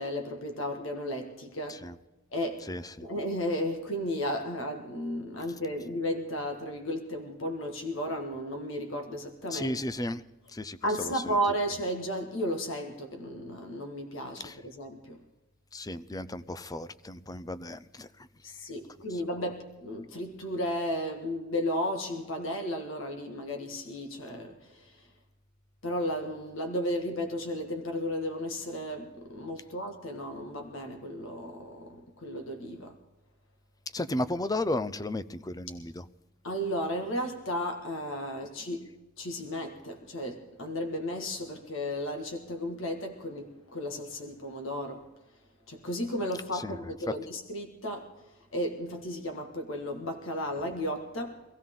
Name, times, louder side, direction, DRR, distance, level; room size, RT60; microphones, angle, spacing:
voice 1, 0.0-1.9 2.3-2.7 3.0-9.8 10.8-15.2 18.4-25.1 25.8-33.0 36.4-38.8 39.2-45.1 45.7-48.1 48.5-51.4, equal, 70° left, 1.8 m, -34 dB
voice 2, 2.7-3.1 9.5-10.2 10.5-10.8 14.4-14.5 15.7-18.1 33.9-36.0 46.6-46.7, left 1 dB, 20° left, 0.6 m, -34 dB
24.5 x 16.0 x 3.8 m
head